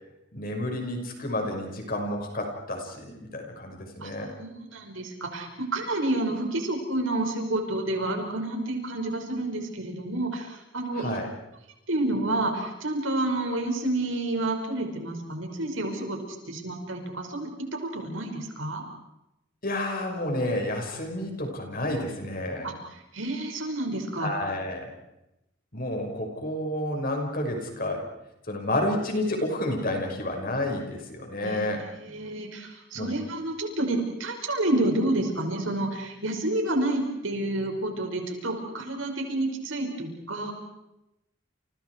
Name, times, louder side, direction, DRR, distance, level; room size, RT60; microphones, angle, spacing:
voice 1, 0.3-4.3 11.0-11.3 19.6-22.7 24.2-24.9 25.7-28.1 28.5-31.8 32.9-33.1, left 1 dB, 45° left, 3 dB, 5.8 m, -30 dB
voice 2, 4.4-11.2 11.9-16.2 16.5-17.5 17.8-18.8 22.6-22.7 23.1-24.3 31.4-40.5, right 2 dB, 80° right, 3 dB, 5.8 m, -29 dB
30.0 x 29.5 x 4.8 m, 0.89 s
head